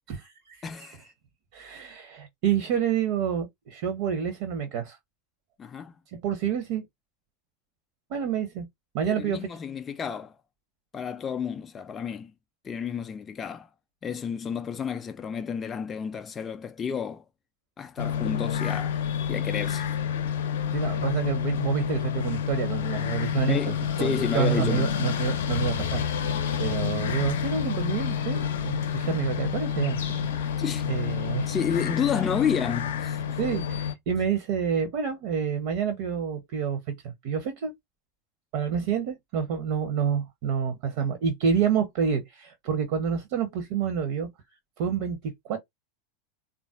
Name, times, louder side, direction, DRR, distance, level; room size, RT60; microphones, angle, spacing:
voice 1, 0.1-1.1 1.5-5.0 6.1-6.8 8.1-8.7 8.9-9.4 20.7-30.0 30.4-30.5 30.9-31.5 33.4-37.7 38.5-44.3 44.8-45.6, right 7 dB, 50° right, 0.9 m, -28 dB
voice 2, 0.6-1.0 5.6-5.9 9.1-10.4 10.9-12.3 12.6-13.7 14.0-17.2 17.8-19.0 19.3-19.9 23.5-24.9 30.6-30.8 31.5-33.2, left 7 dB, 20° left, 0.4 m, -31 dB
sound 1, 18.0-33.9, left 8 dB, 60° left, 0.6 m, -29 dB
3.7 x 2.5 x 2.5 m
figure-of-eight pair, 85°, 0 cm